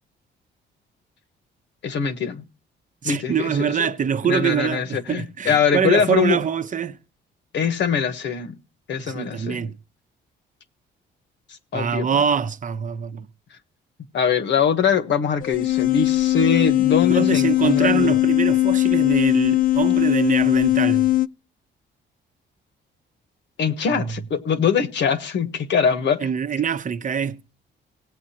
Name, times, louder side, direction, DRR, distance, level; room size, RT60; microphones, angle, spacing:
voice 1, 1.8-2.4 3.0-3.5 3.8-3.9 4.2-6.4 7.5-8.5 8.9-9.7 11.7-12.1 14.1-18.1 23.6-26.3, left 6 dB, 65° left, 1.3 m, -22 dB
voice 2, 3.0-7.0 9.1-9.8 11.7-13.3 17.1-21.1 24.0-24.2 26.2-27.4, right 7 dB, 40° right, 0.8 m, -24 dB
sound 1, 15.4-21.3, left 16 dB, 45° left, 0.5 m, -19 dB
18.5 x 8.4 x 2.9 m
cardioid pair, 90°, 20 cm